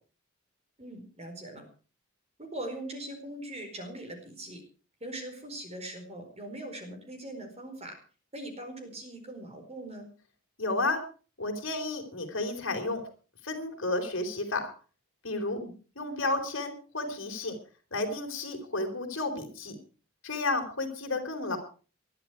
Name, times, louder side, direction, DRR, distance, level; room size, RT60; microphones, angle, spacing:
voice 1, 0.8-1.6 2.4-4.6 5.0-8.0 8.3-10.1 15.5-15.7, right 1 dB, 30° right, 5 dB, 4.6 m, -41 dB
voice 2, 10.6-11.0 11.4-13.0 13.4-14.7 15.2-15.6 16.0-17.6 17.9-19.8 20.2-21.6, left 2 dB, 65° left, 4 dB, 4.0 m, -32 dB
20.5 x 12.5 x 4.6 m, 0.38 s
head